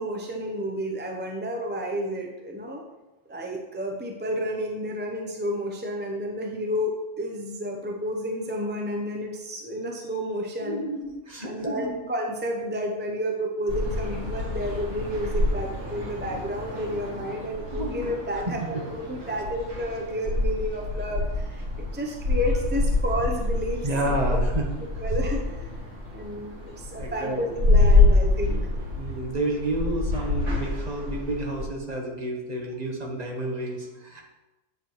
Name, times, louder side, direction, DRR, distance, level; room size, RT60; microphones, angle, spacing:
voice 1, 0.0-2.8 3.3-10.8 11.4-24.1 24.8-25.8 26.1-28.6, equal, 10° right, 1 dB, 0.5 m, -31 dB
voice 2, 10.6-12.0 17.7-18.0 23.8-24.7 27.0-27.5 28.9-34.2, right 1 dB, 35° right, 0 dB, 1.3 m, -30 dB
sound 1, 13.7-31.6, left 2 dB, 80° right, 2.5 m, -26 dB
7.9 x 7.0 x 3.1 m, 1.1 s
omnidirectional pair, 1.2 m